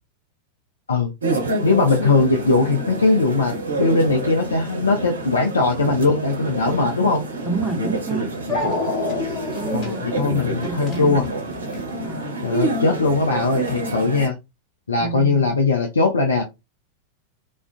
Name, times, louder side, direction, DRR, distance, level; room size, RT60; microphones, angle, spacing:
sound 1, 1.2-14.3, right 2 dB, 70° right, 0.6 m, -28 dB
voice 1, 1.6-7.2 9.7-11.2 12.4-14.3 14.9-16.4, left 3 dB, 75° left, 0.4 m, -20 dB
Dog, 7.4-7.5 8.5-11.9, left 3 dB, 30° left, 1.3 m, -28 dB
voice 2, 7.4-8.3 9.5-11.3 12.0-12.4 15.0-15.5, right 3 dB, 10° right, 0.9 m, -29 dB
2.4 x 2.2 x 2.5 m
figure-of-eight pair, 90°, 0 cm